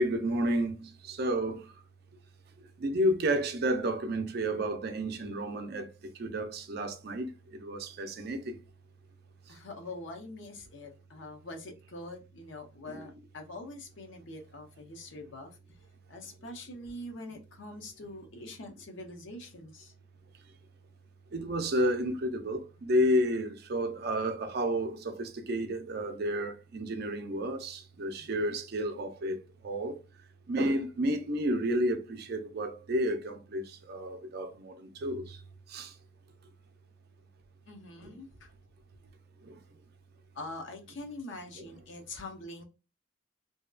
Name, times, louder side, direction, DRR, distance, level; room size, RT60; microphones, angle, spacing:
voice 1, 0.0-1.7 2.6-8.6 12.9-13.1 21.3-30.0 30.5-35.4 35.7-35.9 38.0-38.1 39.4-39.6 41.6-41.7, equal, 50° right, 0.4 m, -31 dB
voice 2, 9.5-15.5 16.1-19.9 28.2-28.6 37.7-38.5 40.3-42.6, left 2 dB, 65° left, 0.7 m, -44 dB
2.7 x 2.2 x 2.3 m
head